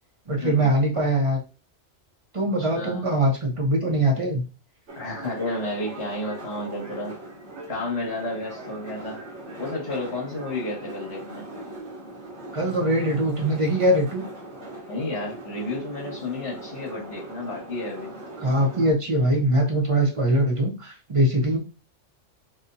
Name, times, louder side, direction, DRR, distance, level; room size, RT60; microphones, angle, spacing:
voice 1, 0.3-1.4 2.3-4.4 12.5-14.2 18.4-21.6, right 1 dB, 30° right, 0 dB, 0.8 m, -22 dB
voice 2, 2.6-3.0 5.0-7.1 7.7-9.2 9.6-11.5 14.9-18.1, left 2 dB, 60° left, -4 dB, 2.0 m, -31 dB
sound 1, 4.9-18.9, right 1 dB, 65° right, 1.2 m, -40 dB
4.2 x 2.4 x 2.6 m, 0.34 s
omnidirectional pair, 1.3 m